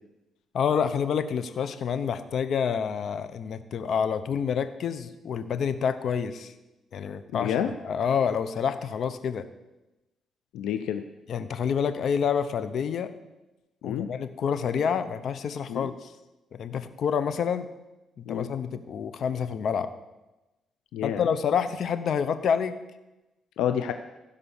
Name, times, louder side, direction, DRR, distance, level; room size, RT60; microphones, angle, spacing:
voice 1, 0.5-6.5 6.9-7.5 7.8-9.5 11.3-13.1 13.8-16.1 16.5-17.7 18.2-19.9 21.0-22.8, left 7 dB, 60° left, 12 dB, 0.9 m, -28 dB
voice 2, 7.3-7.7 10.5-11.0 13.8-14.1 15.7-15.9 18.3-18.5 20.9-21.3 23.6-23.9, left 9 dB, 90° left, 8 dB, 0.6 m, -28 dB
15.5 x 5.3 x 7.1 m, 1.0 s
cardioid pair, 90°, 0 cm